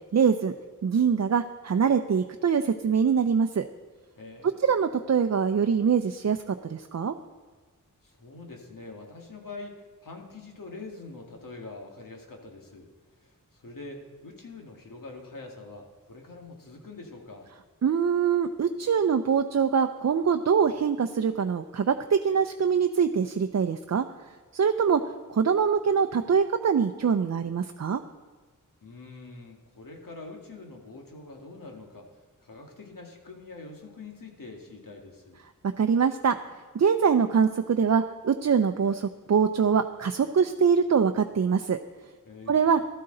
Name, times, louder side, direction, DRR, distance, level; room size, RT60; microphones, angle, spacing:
voice 1, 0.1-0.5 0.8-3.6 4.6-7.2 17.8-24.1 24.5-25.0 25.3-28.0 35.8-36.4 36.7-41.8 42.5-42.8, right 6 dB, 55° right, 7 dB, 0.6 m, -24 dB
voice 2, 4.2-4.7 8.0-12.9 13.2-17.5 28.8-35.4 42.3-42.7, left 3 dB, 75° left, 1 dB, 2.0 m, -44 dB
13.5 x 12.5 x 3.9 m, 1.4 s
wide cardioid pair, 55°, 34 cm